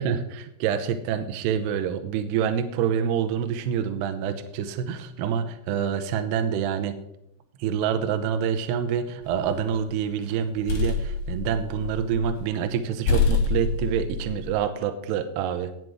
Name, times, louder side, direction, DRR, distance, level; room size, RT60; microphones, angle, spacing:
voice 1, 0.0-7.0 7.6-15.7, right 8 dB, 85° right, 9 dB, 2.4 m, -27 dB
sound 1, 9.3-9.8 10.3-12.4 12.7-12.8 13.1-14.6, left 4 dB, 80° left, 4.5 m, -26 dB
17.0 x 7.6 x 3.6 m, 0.78 s
omnidirectional pair, 5.8 m